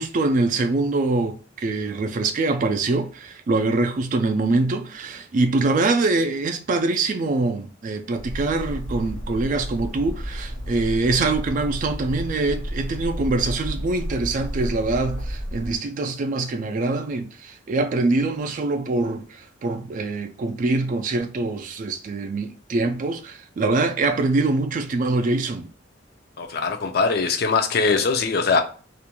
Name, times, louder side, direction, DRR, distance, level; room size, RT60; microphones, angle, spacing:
voice 1, 0.0-25.7, right 3 dB, 45° right, 0.3 m, -24 dB
Bird, 8.1-15.8, equal, 75° left, 0.8 m, -32 dB
voice 2, 26.4-28.6, left 4 dB, 55° left, 0.4 m, -21 dB
2.4 x 2.2 x 2.9 m
head